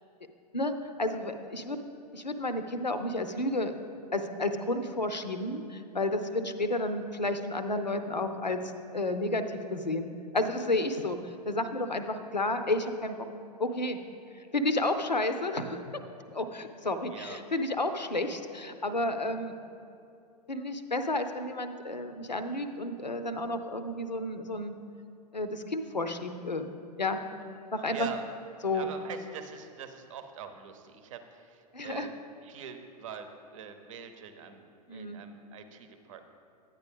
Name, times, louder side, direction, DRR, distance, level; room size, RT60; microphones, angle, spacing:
voice 1, 0.5-1.8 2.1-3.8 4.1-8.6 8.9-9.4 9.7-11.2 11.5-13.2 13.6-14.0 14.5-16.0 16.3-19.5 20.5-24.7 25.3-26.7 27.0-27.2 27.7-28.1 28.6-28.9 31.7-32.1 34.9-35.2, left 2 dB, 90° left, 9 dB, 0.6 m, -31 dB
voice 2, 17.0-17.4 27.9-28.2 28.7-32.1 32.4-36.2, right 7 dB, 50° right, 8 dB, 0.8 m, -44 dB
10.5 x 8.3 x 3.5 m, 2.5 s
figure-of-eight pair, 100°, 21 cm